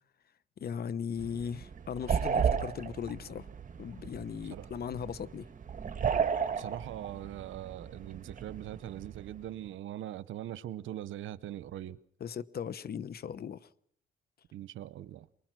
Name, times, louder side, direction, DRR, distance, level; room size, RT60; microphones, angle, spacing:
voice 1, 0.6-3.5 3.8-5.5 12.2-13.7, left 7 dB, 50° left, 0.9 m, -38 dB
sound 1, 1.2-9.5, right 7 dB, 40° right, 1.9 m, -34 dB
voice 2, 6.5-12.0 14.5-15.3, right 12 dB, 75° right, 0.9 m, -41 dB
23.5 x 21.0 x 6.1 m
cardioid pair, 90°, 20 cm